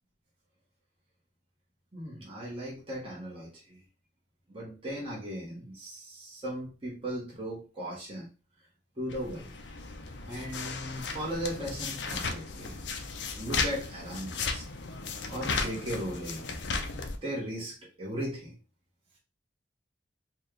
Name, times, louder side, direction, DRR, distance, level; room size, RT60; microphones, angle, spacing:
voice 1, 1.9-3.8 4.5-8.3 9.0-9.6 10.3-12.9 13.3-14.6 15.3-16.6 17.2-18.6, equal, 30° right, -4 dB, 1.3 m, -37 dB
sound 1, 9.1-17.2, left 4 dB, 75° left, 0.6 m, -35 dB
4.3 x 2.4 x 3.2 m, 0.33 s
head